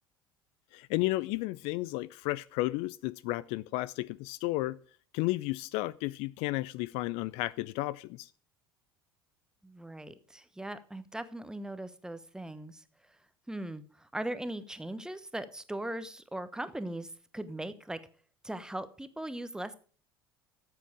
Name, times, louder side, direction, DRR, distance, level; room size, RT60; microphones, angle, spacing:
voice 1, 0.7-4.8 5.1-8.3, left 19 dB, 55° left, 0.4 m, -33 dB
voice 2, 9.6-12.8 13.5-18.0 18.4-19.8, right 1 dB, 5° right, 1.0 m, -39 dB
13.0 x 7.6 x 4.9 m
figure-of-eight pair, 65°, 12 cm